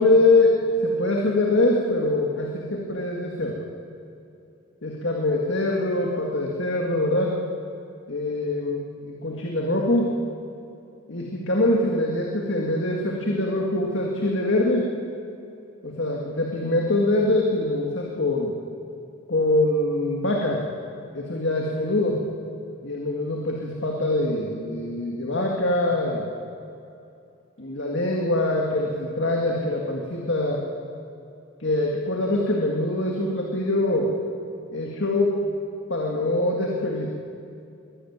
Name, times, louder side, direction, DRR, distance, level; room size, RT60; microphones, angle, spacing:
voice 1, 0.0-3.7 4.8-7.4 8.1-10.2 11.1-14.9 15.8-18.6 19.3-20.6 21.1-22.2 22.8-26.3 27.6-30.6 31.6-34.1 34.7-35.4 35.9-37.1, left 2 dB, 60° left, -1 dB, 2.0 m, -23 dB
22.5 x 13.5 x 9.4 m, 2.7 s
head